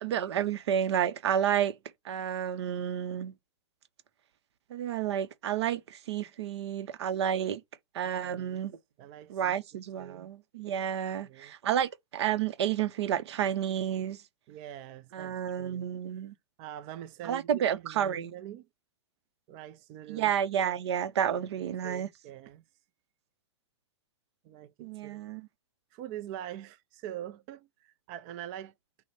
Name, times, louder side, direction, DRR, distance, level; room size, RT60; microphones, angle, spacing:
voice 1, 0.0-1.8 2.0-3.3 4.7-7.6 7.9-8.8 9.3-14.2 15.1-16.3 17.2-18.3 20.1-22.1 24.8-25.5, right 9 dB, 70° right, 0.6 m, -30 dB
voice 2, 8.2-8.6 9.0-9.5 10.0-10.3 11.2-11.5 14.5-15.9 16.6-18.7 19.5-20.3 21.6-22.6 24.4-25.2 25.9-28.7, right 11 dB, 35° right, 0.4 m, -44 dB
6.2 x 2.1 x 4.1 m
hypercardioid pair, 140°, 14 cm